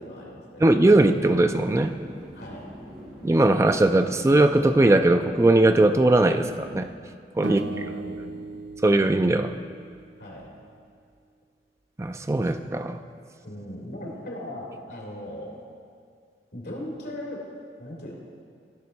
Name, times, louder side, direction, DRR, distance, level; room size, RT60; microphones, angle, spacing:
voice 1, 0.0-0.6 2.3-2.7 7.4-8.4 10.2-10.5 13.4-15.5 16.5-17.5 17.8-18.1, left 1 dB, 70° left, -2 dB, 2.5 m, -38 dB
voice 2, 0.6-1.9 3.2-6.9 7.4-7.6 8.8-9.5 12.0-13.0, right 2 dB, 15° right, 8 dB, 0.3 m, -19 dB
sound 1, 0.9-6.8, equal, 35° right, 1.6 m, -43 dB
sound 2, 7.4-10.6, right 3 dB, 90° right, 0.6 m, -37 dB
16.5 x 5.6 x 4.1 m, 2.2 s
head